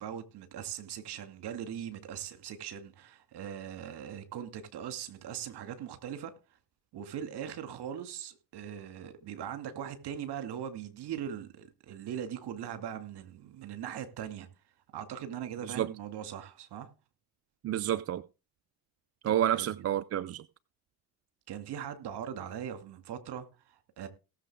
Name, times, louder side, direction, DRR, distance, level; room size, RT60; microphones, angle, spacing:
voice 1, 0.0-6.3 6.9-14.5 14.9-16.9 19.3-19.9 21.5-24.1, right 9 dB, 50° right, 2.3 m, -40 dB
voice 2, 17.6-18.2 19.2-20.4, right 11 dB, 30° right, 0.5 m, -29 dB
18.0 x 7.0 x 3.6 m
hypercardioid pair, 55°, 49 cm